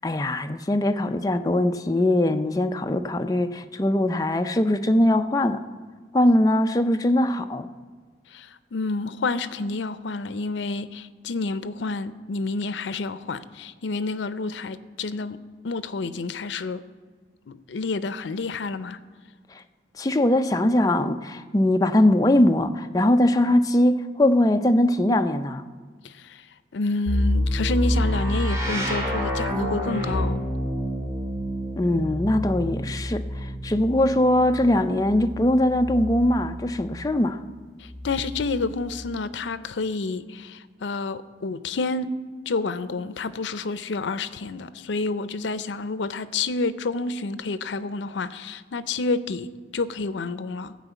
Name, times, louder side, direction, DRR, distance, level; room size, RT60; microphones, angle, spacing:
voice 1, 0.0-5.6 6.1-7.7 20.0-25.6 31.8-37.4, left 1 dB, 20° left, 0.4 m, -21 dB
voice 2, 8.3-15.4 15.6-16.8 17.5-19.0 26.0-26.5 26.7-30.4 37.8-42.1 42.5-50.7, left 3 dB, 85° left, 0.5 m, -29 dB
sound 1, 27.1-36.9 37.9-38.9, equal, 15° right, 2.1 m, -28 dB
14.5 x 5.0 x 8.0 m
head